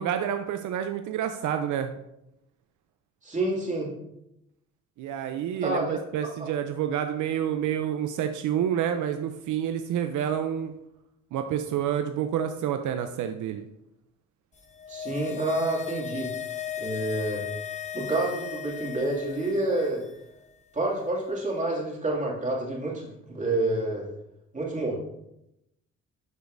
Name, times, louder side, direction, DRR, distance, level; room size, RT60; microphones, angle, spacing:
voice 1, 0.0-1.9 5.0-10.7 11.3-13.6, right 9 dB, 75° right, 7 dB, 0.5 m, -28 dB
voice 2, 3.2-3.9 5.6-6.0 6.4-6.5 14.9-16.3 16.8-17.4 17.9-20.0 20.7-24.0 24.5-24.9, right 2 dB, 25° right, -3 dB, 2.3 m, -28 dB
sound 1, 14.6-20.1 20.4-20.5, left 9 dB, 25° left, 0.7 m, -36 dB
11.0 x 5.1 x 2.6 m, 0.85 s
cardioid pair, 90°, 30 cm